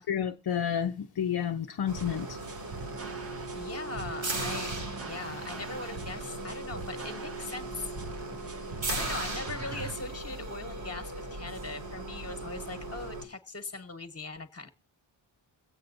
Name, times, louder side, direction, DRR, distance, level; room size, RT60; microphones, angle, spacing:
voice 1, 0.0-2.4, left 8 dB, 50° left, 0.6 m, -30 dB
sound 1, 1.9-13.2, right 2 dB, 70° right, 2.6 m, -38 dB
sound 2, 2.0-10.0, right 3 dB, 30° right, 0.7 m, -43 dB
voice 2, 3.5-7.9 8.9-14.7, left 3 dB, 30° left, 1.3 m, -40 dB
23.0 x 8.3 x 2.6 m
wide cardioid pair, 140°, 49 cm